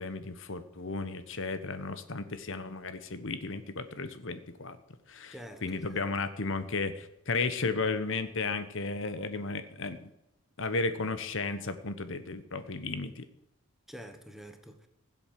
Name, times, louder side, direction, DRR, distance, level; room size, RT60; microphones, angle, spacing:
voice 1, 0.0-4.8 5.1-5.3 5.6-10.1 10.6-13.2, left 3 dB, 60° left, 11 dB, 1.1 m, -34 dB
voice 2, 5.3-6.0 13.9-14.9, equal, ahead, 6 dB, 1.4 m, -47 dB
16.5 x 7.9 x 7.6 m, 0.84 s
head